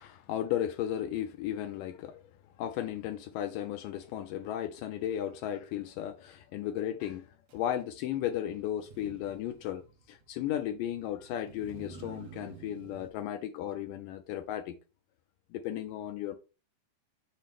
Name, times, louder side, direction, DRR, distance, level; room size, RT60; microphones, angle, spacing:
voice 1, 0.0-2.2 2.6-14.8 15.5-16.4, left 11 dB, 85° left, 1.9 m, -35 dB
Motor vehicle (road), 7.5-7.6 8.8-13.1, right 5 dB, 65° right, 1.6 m, -51 dB
7.5 x 2.8 x 5.0 m
omnidirectional pair, 4.3 m